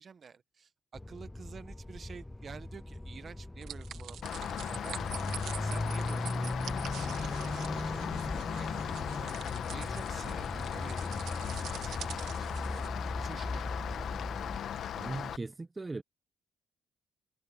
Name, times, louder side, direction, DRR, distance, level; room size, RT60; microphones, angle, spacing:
voice 1, 0.0-5.2 5.5-6.6 7.0-9.3 9.7-12.9 13.2-14.2, right 6 dB, 45° right, 1.2 m, -50 dB
sound 1, 0.9-14.6, left 1 dB, 10° left, 0.5 m, -39 dB
sound 2, 3.6-12.9, right 11 dB, 80° right, 1.7 m, -46 dB
Rain, 4.2-15.4, left 9 dB, 65° left, 1.1 m, -37 dB
voice 2, 14.9-16.0, right 3 dB, 20° right, 0.9 m, -38 dB
cardioid pair, 90°, 0 cm